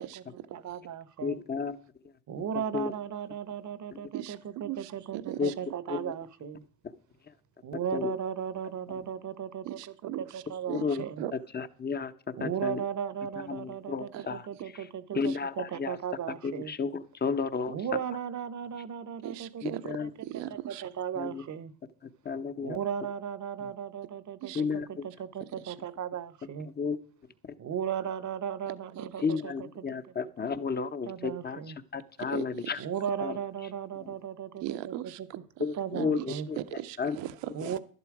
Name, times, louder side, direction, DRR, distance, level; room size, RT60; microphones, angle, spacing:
voice 1, 0.0-1.4 2.3-6.6 7.6-9.8 10.2-11.2 12.4-16.7 17.7-19.8 20.5-21.7 22.6-26.7 27.6-29.8 31.0-31.8 32.8-35.3 35.8-36.5 37.5-37.8, right 8 dB, 40° right, 1.1 m, -36 dB
voice 2, 1.2-1.8 2.7-2.9 5.4-5.5 5.9-6.1 7.9-8.1 8.9-9.0 10.7-11.0 11.5-12.1 12.4-12.8 13.4-14.5 15.1-16.0 16.4-17.8 19.6-20.1 21.2-21.4 22.2-22.8 24.5-25.1 26.8-27.0 29.2-31.6 31.9-32.8 33.2-33.4 34.0-34.1 35.6-36.6 37.0-37.2, left 5 dB, 20° left, 0.9 m, -32 dB
voice 3, 4.6-5.5 9.6-10.8 11.2-11.3 14.1-14.3 15.3-15.4 19.2-20.8 24.4-24.6 25.6-25.7 29.0-29.1 32.2-32.9 34.6-35.2 35.8-37.8, right 13 dB, 65° right, 1.1 m, -39 dB
11.5 x 11.0 x 4.8 m
supercardioid pair, 90°, 47 cm